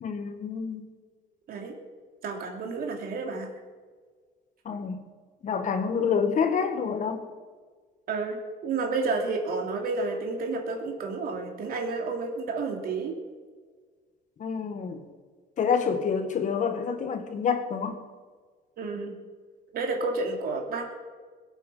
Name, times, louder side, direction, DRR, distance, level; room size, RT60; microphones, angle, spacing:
voice 1, 0.0-0.8 4.7-5.0 5.4-7.2 14.4-15.0 15.6-18.0, left 6 dB, 45° left, 7 dB, 1.8 m, -27 dB
voice 2, 2.2-3.5 8.1-13.1 18.8-19.1 19.7-20.9, right 3 dB, 60° right, 2 dB, 3.1 m, -30 dB
21.5 x 8.4 x 5.8 m, 1.5 s
cardioid pair, 110°, 17 cm